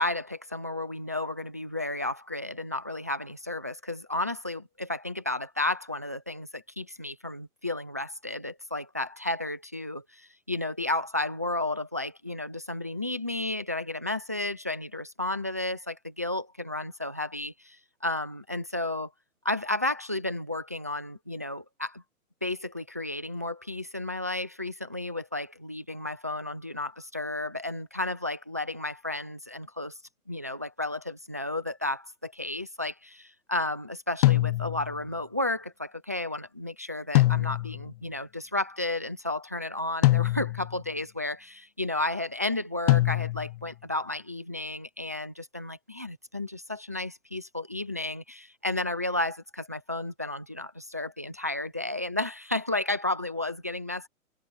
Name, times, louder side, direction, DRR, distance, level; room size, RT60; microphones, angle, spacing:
voice 1, 0.0-19.1 19.4-22.0 22.4-30.0 30.3-54.1, left 2 dB, 15° right, 0.3 m, -32 dB
sound 1, 34.2-35.0 37.1-37.9 40.0-40.8 42.9-43.6, left 17 dB, 25° left, 0.8 m, -23 dB
hypercardioid pair, 150°, 42 cm